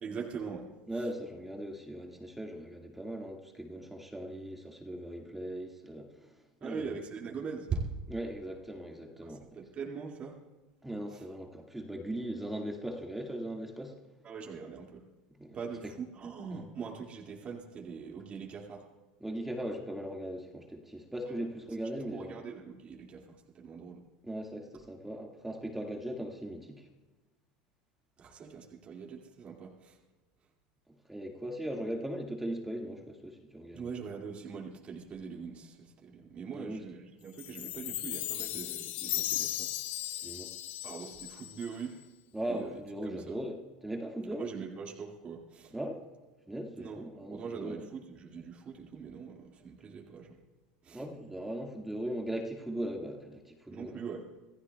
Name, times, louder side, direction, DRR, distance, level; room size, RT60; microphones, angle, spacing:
voice 1, 0.0-1.0 6.6-7.8 9.3-10.4 11.1-11.2 14.2-15.0 15.5-18.9 22.1-24.0 28.2-30.0 33.7-40.3 40.8-42.1 42.5-43.4 44.3-45.7 46.8-47.0 47.3-50.4 50.8-51.0 53.7-54.3, right 5 dB, 35° right, -1 dB, 2.2 m, -42 dB
voice 2, 0.9-7.0 8.1-9.6 10.8-14.0 15.4-15.6 16.5-16.7 19.2-22.4 24.2-26.9 31.1-33.9 36.5-36.8 40.2-40.5 42.3-44.5 45.7-46.0 46.5-47.8 50.9-54.0, right 1 dB, 5° right, 1 dB, 1.9 m, -39 dB
Chime, 37.4-41.9, left 15 dB, 55° left, 0.7 m, -36 dB
27.0 x 15.0 x 2.3 m, 1.2 s
hypercardioid pair, 105°, 4 cm